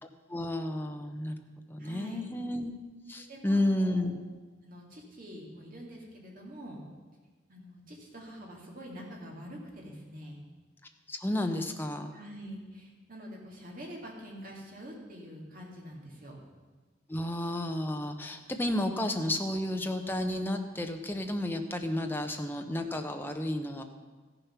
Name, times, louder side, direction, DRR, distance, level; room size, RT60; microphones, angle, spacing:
voice 1, 0.0-1.4 1.7-2.7 3.1-4.2 11.1-12.1 17.1-23.8, left 1 dB, 10° left, 5 dB, 0.7 m, -32 dB
voice 2, 1.8-2.3 3.3-4.1 4.6-6.8 7.5-10.5 12.1-16.4, equal, 45° right, -1 dB, 2.2 m, -45 dB
14.0 x 6.9 x 5.8 m, 1.3 s
head